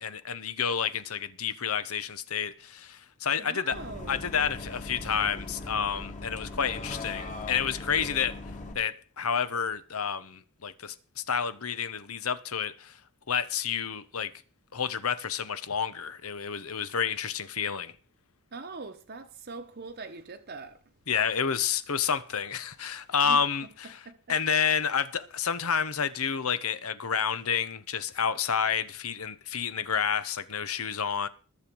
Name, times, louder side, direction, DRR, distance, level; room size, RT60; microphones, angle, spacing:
voice 1, 0.0-3.8 4.1-8.4 8.7-13.0 13.3-14.3 14.7-17.9 21.1-24.0 24.3-31.3, left 7 dB, 80° left, 1.0 m, -29 dB
voice 2, 3.4-4.2 18.5-20.8 23.2-24.4, right 3 dB, 50° right, 1.0 m, -43 dB
Bus, 3.7-8.7, left 2 dB, 35° left, 2.1 m, -39 dB
20.5 x 7.0 x 4.6 m
head